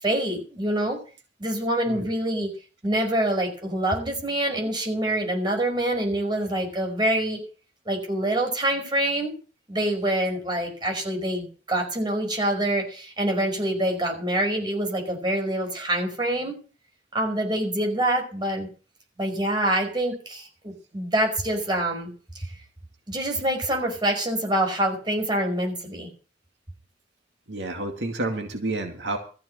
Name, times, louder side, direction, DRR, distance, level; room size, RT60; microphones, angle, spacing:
voice 1, 0.0-1.0 1.4-2.5 2.8-7.4 7.8-9.3 9.7-16.5 17.1-18.7 19.2-22.5 23.1-26.1, right 1 dB, 25° right, 3 dB, 5.0 m, -26 dB
voice 2, 1.9-2.4 27.5-29.2, right 2 dB, 80° right, 3 dB, 2.3 m, -30 dB
14.5 x 6.1 x 9.6 m, 0.38 s
head